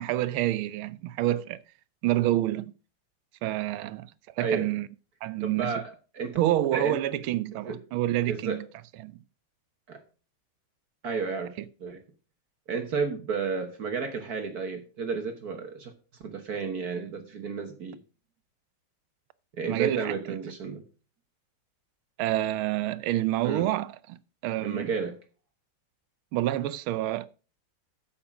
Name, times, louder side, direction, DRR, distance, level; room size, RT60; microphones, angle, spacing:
voice 1, 0.0-1.6 2.0-2.7 3.4-4.1 4.4-4.9 5.2-5.7 6.4-8.7 9.0-9.2 11.6-11.7 19.7-20.4 22.2-24.2 24.4-24.9 26.3-27.3, right 14 dB, 80° right, 1.5 m, -28 dB
voice 2, 4.4-4.7 5.4-6.4 6.7-7.0 7.6-7.8 8.3-8.6 9.9-10.0 11.0-11.5 11.8-12.0 12.7-15.9 16.2-18.0 19.5-20.8 23.4-23.7 24.6-25.2, right 5 dB, 50° right, 1.4 m, -32 dB
8.7 x 7.4 x 5.1 m
omnidirectional pair, 2.3 m